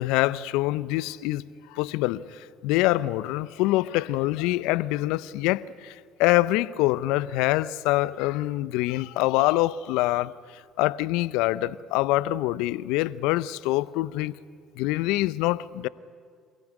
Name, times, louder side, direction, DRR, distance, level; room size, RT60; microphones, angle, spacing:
voice 1, 0.0-1.4 1.7-5.9 6.2-10.3 10.8-14.3 14.8-15.9, left 17 dB, 75° left, 0.6 m, -25 dB
27.0 x 15.5 x 10.0 m
hypercardioid pair, 60°, 0 cm